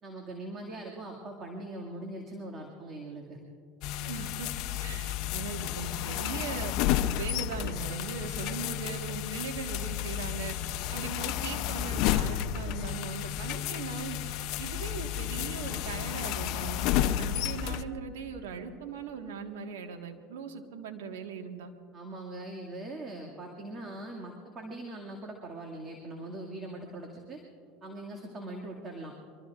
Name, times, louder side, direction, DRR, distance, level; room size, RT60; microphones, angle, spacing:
voice 1, 0.0-3.4 21.9-27.4 27.8-29.1, right 2 dB, 30° right, 0 dB, 2.2 m, -41 dB
sound 1, 3.8-17.8, left 12 dB, 60° left, 0.7 m, -32 dB
voice 2, 4.1-4.5 4.8-6.7 7.1-10.5 10.9-14.2 14.6-21.7, right 6 dB, 80° right, 4 dB, 1.6 m, -39 dB
24.0 x 23.5 x 2.5 m, 2.3 s
hypercardioid pair, 100°, 0 cm